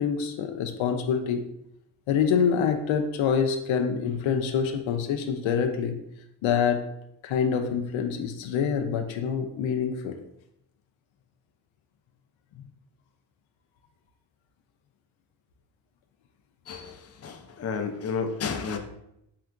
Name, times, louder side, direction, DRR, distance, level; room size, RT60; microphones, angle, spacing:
voice 1, 0.0-1.5 2.1-6.0 6.4-6.9 7.2-10.2, left 7 dB, 70° left, 5 dB, 0.6 m, -26 dB
voice 2, 16.7-18.8, left 5 dB, 30° left, 5 dB, 0.6 m, -32 dB
4.5 x 3.3 x 2.4 m, 0.79 s
supercardioid pair, 50°, 48 cm